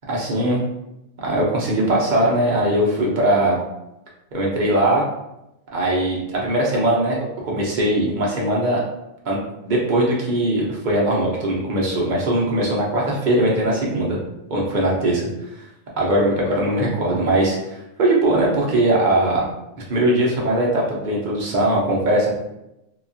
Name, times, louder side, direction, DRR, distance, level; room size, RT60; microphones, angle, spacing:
voice 1, 0.1-0.6 1.2-3.6 4.3-5.1 5.7-8.8 9.2-9.4 9.6-14.2 14.5-15.7 16.0-19.5 19.9-22.3, right 1 dB, 45° right, -3 dB, 0.7 m, -20 dB
2.8 x 2.3 x 2.6 m, 0.88 s
omnidirectional pair, 1.4 m